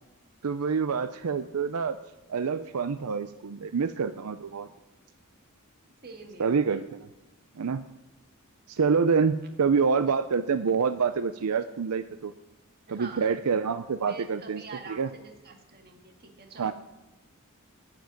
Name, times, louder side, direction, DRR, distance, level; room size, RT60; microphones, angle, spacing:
voice 1, 0.4-2.0 2.3-4.7 6.4-7.1 7.6-7.8 8.7-12.3 12.9-14.6 14.9-15.1 16.6-16.7, right 5 dB, 85° right, 11 dB, 0.5 m, -27 dB
voice 2, 6.0-6.8 12.9-13.3 14.1-16.7, right 4 dB, 45° right, 3 dB, 1.9 m, -46 dB
12.5 x 5.9 x 8.6 m, 1.1 s
head